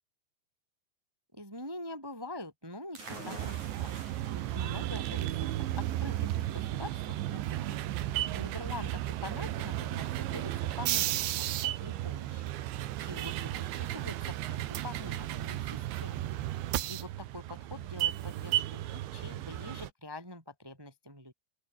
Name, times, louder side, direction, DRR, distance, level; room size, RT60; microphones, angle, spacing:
voice 1, 1.3-4.0 4.3-5.5 5.7-7.0 7.3-7.8 8.3-12.4 13.0-16.2 16.9-21.3, left 2 dB, 5° right, 3.2 m, -45 dB
sound 1, 2.9-10.4, right 3 dB, 35° right, 8.9 m, -49 dB
sound 2, 3.4-19.9, right 14 dB, 70° right, 3.5 m, -34 dB
open air
omnidirectional pair, 5.9 m